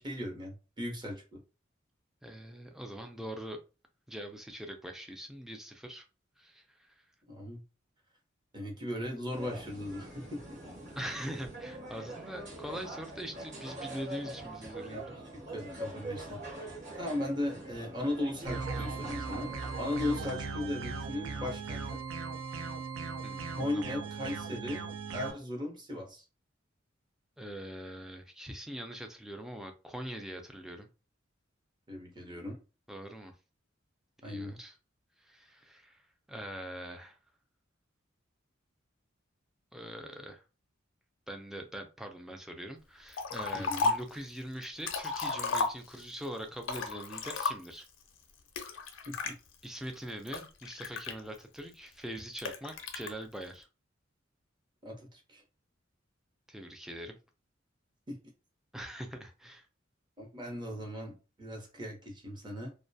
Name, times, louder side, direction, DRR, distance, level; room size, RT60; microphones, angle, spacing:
voice 1, 0.0-1.4 7.3-7.6 8.5-10.6 14.8-19.5 19.8-22.0 23.6-24.8 25.1-26.2 31.9-32.6 34.2-34.6 43.5-43.9 49.1-49.4 54.8-55.4 58.1-58.2 60.2-62.7, left 1 dB, 25° right, 1 dB, 0.7 m, -37 dB
voice 2, 2.2-3.6 4.1-6.1 6.4-6.9 11.0-15.2 23.2-23.5 23.7-24.0 27.4-30.9 32.9-33.3 34.2-34.8 35.2-36.0 36.3-37.2 39.7-40.4 41.3-47.9 49.6-53.7 56.5-57.2 58.7-59.7, right 1 dB, ahead, 4 dB, 0.3 m, -43 dB
sound 1, 9.3-20.5, right 1 dB, 40° right, 1.1 m, -44 dB
sound 2, 18.5-25.3, right 4 dB, 80° right, 0.4 m, -38 dB
Liquid, 43.1-44.2 44.6-46.2 46.6-47.9 48.6-49.3 49.9-51.6 52.4-53.1, left 4 dB, 75° left, 0.5 m, -33 dB
2.2 x 2.1 x 2.6 m, 0.31 s
head